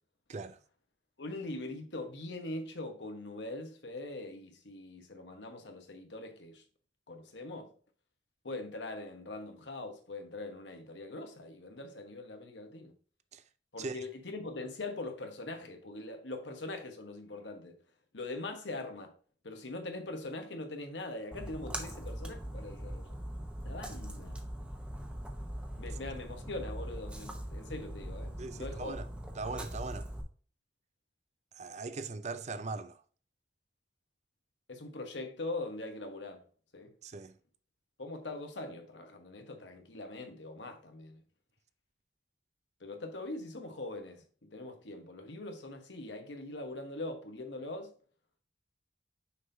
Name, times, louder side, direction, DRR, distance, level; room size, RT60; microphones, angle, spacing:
voice 1, 1.2-6.6 7.1-7.7 8.4-12.9 13.7-17.8 18.1-19.1 19.4-23.2 23.6-24.4 25.8-29.0 34.7-36.4 36.7-36.9 38.0-41.2 42.8-47.9, left 2 dB, 85° left, 1.3 m, -42 dB
Splash splatter, 21.3-30.2, equal, 5° right, 0.9 m, -41 dB
voice 2, 28.4-29.0 29.4-30.1 31.5-33.0 37.0-37.4, right 3 dB, 40° right, 0.5 m, -40 dB
6.4 x 5.4 x 2.7 m
head